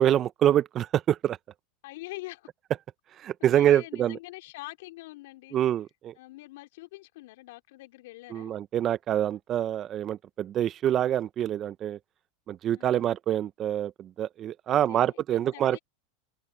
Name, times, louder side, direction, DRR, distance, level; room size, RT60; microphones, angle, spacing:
voice 1, 0.0-1.4 3.2-4.2 5.5-6.1 8.3-12.0 12.5-15.8, right 11 dB, 35° right, 1.1 m, -26 dB
voice 2, 1.8-2.5 3.4-5.6 6.2-8.5 12.8-13.1 14.7-15.8, left 20 dB, 70° left, 3.6 m, -45 dB
hypercardioid pair, 105°, 0 cm